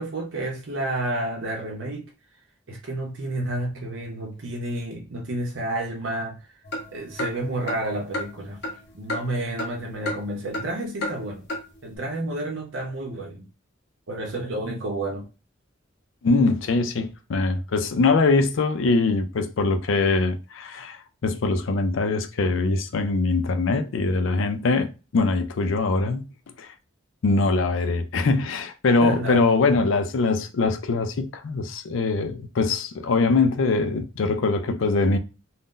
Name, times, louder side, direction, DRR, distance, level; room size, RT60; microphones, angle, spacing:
voice 1, 0.0-2.1 2.7-6.4 6.9-8.6 8.9-11.5 11.8-13.5 14.1-15.3 29.0-29.4, right 1 dB, 85° right, 0.7 m, -30 dB
sound 1, 6.6-9.8 10.1-10.7 11.0-11.1 11.5-11.6, left 1 dB, 60° left, 0.8 m, -32 dB
voice 2, 16.2-26.2 26.6-26.7 27.2-35.2, left 3 dB, 90° left, 0.5 m, -22 dB
2.6 x 2.1 x 3.6 m
head